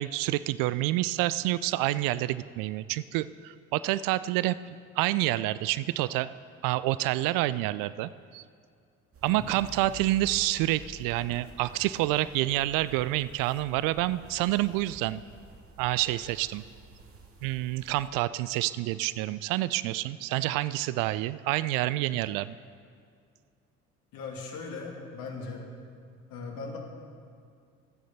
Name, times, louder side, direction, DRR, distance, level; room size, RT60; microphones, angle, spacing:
voice 1, 0.0-4.6 5.0-6.4 6.6-8.4 9.2-15.2 15.8-16.6 17.4-22.6, right 16 dB, 60° right, 17 dB, 0.5 m, -28 dB
sound 1, 9.1-18.1, right 2 dB, 35° right, 2.0 m, -50 dB
voice 2, 9.3-9.6 24.1-25.6 26.3-26.8, left 4 dB, 60° left, 0 dB, 2.6 m, -39 dB
25.5 x 9.3 x 4.2 m, 2.2 s
figure-of-eight pair, 55°, 39 cm